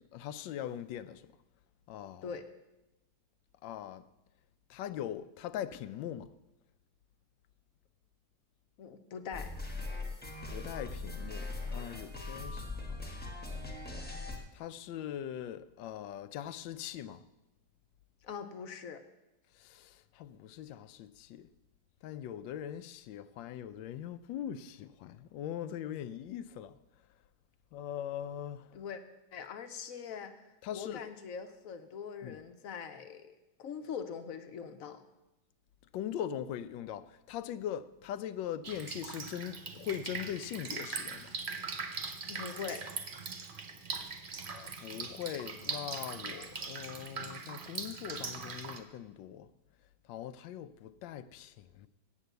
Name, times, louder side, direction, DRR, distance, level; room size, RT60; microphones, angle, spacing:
voice 1, 0.1-1.2 1.9-2.2 3.6-4.0 4.7-6.3 10.5-12.7 14.5-17.2 19.6-21.5 22.0-26.8 27.7-28.7 30.6-31.0 32.2-32.4 35.9-41.3 44.5-49.5 50.1-51.9, left 10 dB, 90° left, 1.3 m, -41 dB
voice 2, 8.8-9.5 18.2-19.0 28.7-29.0 29.3-35.1 42.3-42.8, left 6 dB, 60° left, 1.0 m, -42 dB
sound 1, 9.3-14.4, left 3 dB, 5° left, 1.0 m, -40 dB
Drip, 38.6-48.8, right 4 dB, 60° right, 0.5 m, -41 dB
8.5 x 8.2 x 7.9 m
omnidirectional pair, 2.0 m